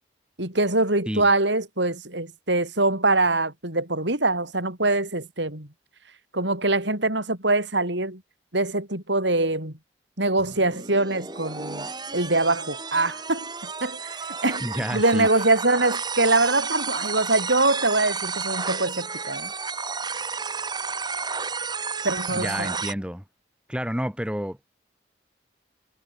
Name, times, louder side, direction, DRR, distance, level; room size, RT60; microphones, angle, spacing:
voice 1, 0.4-5.7 6.3-8.2 8.5-9.7 10.2-11.9 12.1-13.5 13.8-19.5 22.0-22.7, right 2 dB, 70° right, 7.3 m, -23 dB
sound 1, 10.4-22.9, right 5 dB, 20° right, 2.3 m, -32 dB
voice 2, 14.6-15.3 22.3-23.2 23.7-24.7, equal, 5° right, 4.6 m, -30 dB
head